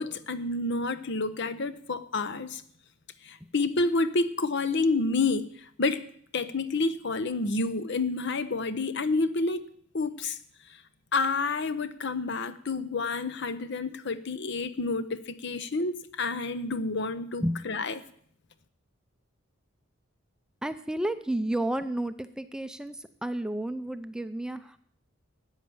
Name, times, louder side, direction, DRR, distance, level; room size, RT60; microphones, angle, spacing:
voice 1, 0.0-2.6 3.2-6.0 6.3-9.7 9.9-10.4 11.1-17.9, left 3 dB, 60° left, 0.9 m, -29 dB
voice 2, 20.6-24.8, right 1 dB, 5° right, 0.5 m, -31 dB
13.5 x 9.0 x 7.1 m
head